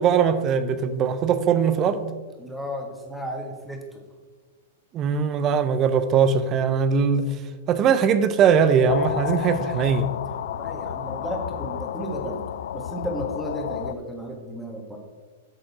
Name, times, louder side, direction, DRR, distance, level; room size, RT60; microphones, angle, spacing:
voice 1, 0.0-2.0 4.9-7.3 7.7-10.1, right 6 dB, 30° right, 0.6 m, -20 dB
voice 2, 2.4-4.0 10.5-12.4 12.7-15.0, equal, ahead, 1.6 m, -33 dB
sound 1, 8.9-14.0, left 11 dB, 70° left, 0.3 m, -31 dB
9.1 x 6.4 x 4.2 m
hypercardioid pair, 130°, 0 cm